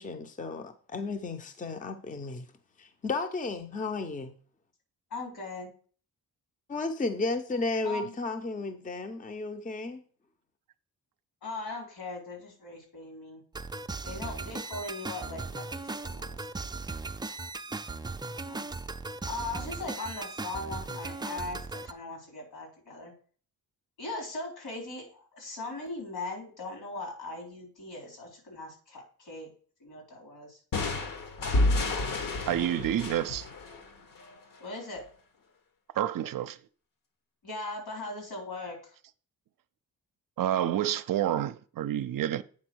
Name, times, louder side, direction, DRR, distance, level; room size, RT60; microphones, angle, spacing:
voice 1, 0.0-2.5 2.8-4.3 6.7-10.0, left 3 dB, 20° left, 0.7 m, -33 dB
voice 2, 5.1-5.7 7.8-8.2 11.4-13.4 14.0-16.5 18.5-18.7 19.3-23.1 24.0-29.5 29.8-30.6 34.6-35.0 37.4-38.9, left 2 dB, 75° left, 4.1 m, -39 dB
sound 1, 13.5-21.9, right 3 dB, 10° right, 0.4 m, -38 dB
sound 2, 30.7-34.4, left 2 dB, 60° left, 1.3 m, -30 dB
voice 3, 32.5-33.5 35.9-36.6 40.4-42.4, right 11 dB, 60° right, 0.6 m, -29 dB
8.6 x 3.8 x 6.2 m
cardioid pair, 105°, 37 cm